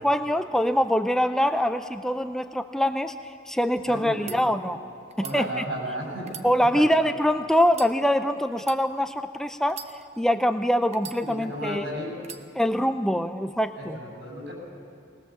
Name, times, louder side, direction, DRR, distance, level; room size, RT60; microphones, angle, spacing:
voice 1, 0.0-4.8 5.3-5.7 6.4-9.8 10.2-11.8 12.6-14.0, equal, 5° left, 8 dB, 0.4 m, -24 dB
voice 2, 3.9-4.4 5.2-6.5 6.7-7.0 11.2-12.2 13.7-14.5, equal, 70° right, -1 dB, 6.9 m, -34 dB
sound 1, 4.2-4.4 5.1-5.4 6.2-7.1 7.7-7.9 8.6-8.8 9.7-10.3 10.9-11.6 12.2-12.5, right 8 dB, 35° right, 0.9 m, -41 dB
21.0 x 19.5 x 7.2 m, 2.5 s
head